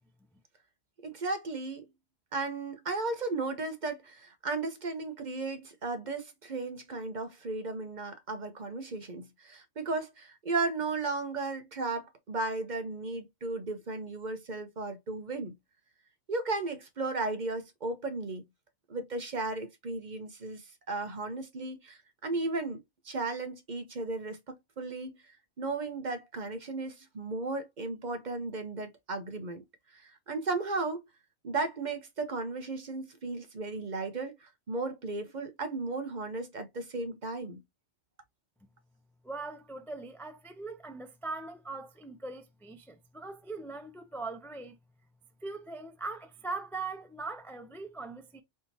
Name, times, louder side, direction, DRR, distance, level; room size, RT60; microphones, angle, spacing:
voice 1, 1.0-1.9 2.3-15.5 16.3-18.4 18.9-22.8 23.0-29.6 29.9-31.0 31.4-37.6, right 3 dB, 45° right, 0.9 m, -35 dB
voice 2, 39.2-44.8 45.4-48.4, right 3 dB, 5° left, 0.3 m, -40 dB
4.2 x 3.5 x 2.7 m
omnidirectional pair, 1.2 m